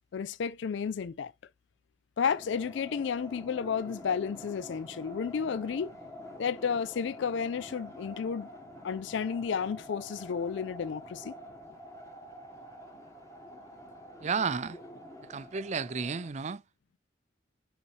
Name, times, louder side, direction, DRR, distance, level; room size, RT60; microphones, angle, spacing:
voice 1, 0.1-1.3 2.2-5.9 6.4-8.5 8.8-11.3, left 6 dB, 60° left, 0.4 m, -32 dB
sound 1, 2.2-16.3, left 1 dB, 15° left, 1.4 m, -47 dB
voice 2, 14.2-14.8 15.2-16.6, right 5 dB, 35° right, 0.5 m, -32 dB
8.0 x 4.1 x 3.2 m
head